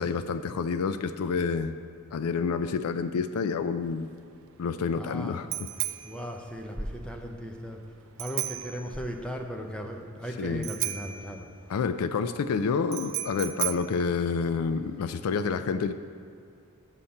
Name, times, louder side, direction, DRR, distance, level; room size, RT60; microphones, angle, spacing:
voice 1, 0.0-1.7 2.1-4.1 4.6-5.5 10.4-10.7 11.7-15.9, left 5 dB, 90° left, 10 dB, 0.4 m, -28 dB
Bicycle bell, 3.8-15.0, right 14 dB, 65° right, 0.4 m, -37 dB
voice 2, 4.9-5.4 6.0-7.8 8.2-11.5, equal, 5° left, 2 dB, 0.6 m, -36 dB
7.1 x 5.7 x 6.4 m, 2.3 s
head